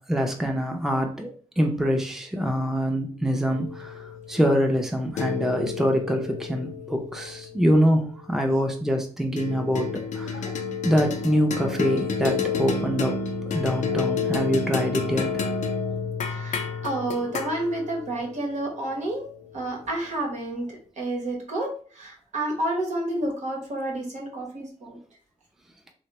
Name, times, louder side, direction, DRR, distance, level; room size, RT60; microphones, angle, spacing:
voice 1, 0.1-1.3 1.6-3.9 4.3-9.9 10.2-10.5 10.8-13.1 13.5-15.3, equal, 5° right, 2 dB, 0.4 m, -24 dB
sound 1, 3.5-8.2 9.4-19.8, left 5 dB, 80° left, 0.4 m, -31 dB
voice 2, 16.2-21.7 21.9-25.0, right 1 dB, 80° right, -1 dB, 1.0 m, -30 dB
3.3 x 2.1 x 2.9 m, 0.44 s
wide cardioid pair, 125°, 12 cm